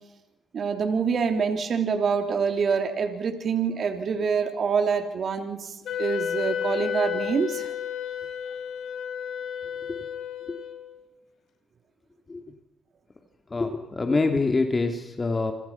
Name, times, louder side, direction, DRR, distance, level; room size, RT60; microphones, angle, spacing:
voice 1, 0.5-7.7, right 6 dB, 55° right, 5 dB, 3.4 m, -26 dB
Wind instrument woodwind instrument, 5.9-11.0, left 9 dB, 70° left, 6.0 m, -32 dB
voice 2, 13.5-15.5, left 3 dB, 25° left, 4 dB, 2.8 m, -25 dB
28.5 x 26.0 x 5.9 m, 0.98 s
cardioid pair, 90°, 0 cm